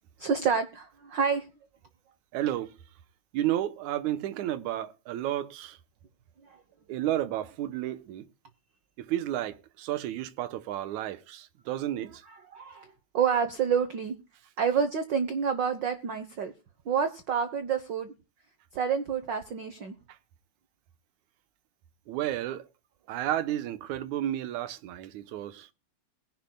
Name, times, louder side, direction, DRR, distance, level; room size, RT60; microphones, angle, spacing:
voice 1, 0.2-1.5 12.3-14.1 14.6-16.5 16.8-18.1 18.7-19.9, right 6 dB, 65° right, 1.1 m, -28 dB
voice 2, 2.3-2.7 3.3-5.8 6.9-8.3 9.0-12.2 22.1-22.7 23.1-25.7, right 12 dB, 85° right, 2.3 m, -32 dB
21.0 x 10.5 x 2.2 m
omnidirectional pair, 3.3 m